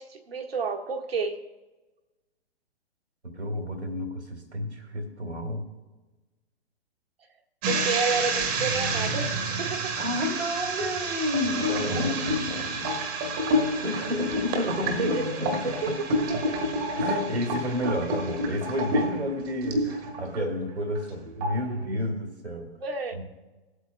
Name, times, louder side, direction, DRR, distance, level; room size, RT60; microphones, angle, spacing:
voice 1, 0.0-1.4 7.6-10.0 15.0-16.0 16.5-16.6 21.3-21.4 21.7-22.0 22.8-23.1, right 4 dB, 60° right, 3 dB, 1.5 m, -31 dB
voice 2, 3.2-5.6 10.0-12.9 13.8-16.4 16.9-22.7 23.1-23.2, left 1 dB, 80° right, 3 dB, 2.2 m, -31 dB
sound 1, 7.6-20.4 20.8-21.1 21.4-21.8, right 1 dB, 25° right, 1.3 m, -29 dB
20.5 x 8.2 x 2.2 m, 1.2 s
figure-of-eight pair, 115°, 33 cm